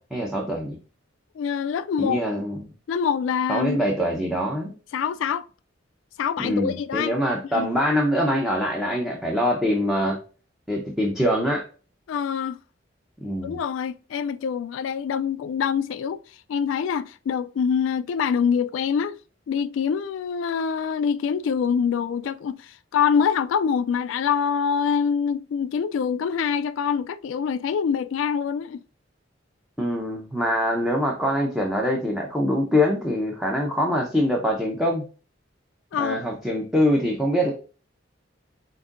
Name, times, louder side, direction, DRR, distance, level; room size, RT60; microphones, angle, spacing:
voice 1, 0.1-0.8 2.0-2.6 3.5-4.7 6.4-10.2 10.7-11.6 13.2-13.6 29.8-35.0 36.0-37.5, equal, ahead, 0.7 m, -24 dB
voice 2, 1.4-2.2 2.9-3.8 4.9-5.5 6.2-7.2 7.5-7.7 12.1-12.6 13.4-19.2 19.5-28.8 35.9-36.2, left 7 dB, 85° left, 0.3 m, -25 dB
7.6 x 2.7 x 2.5 m
head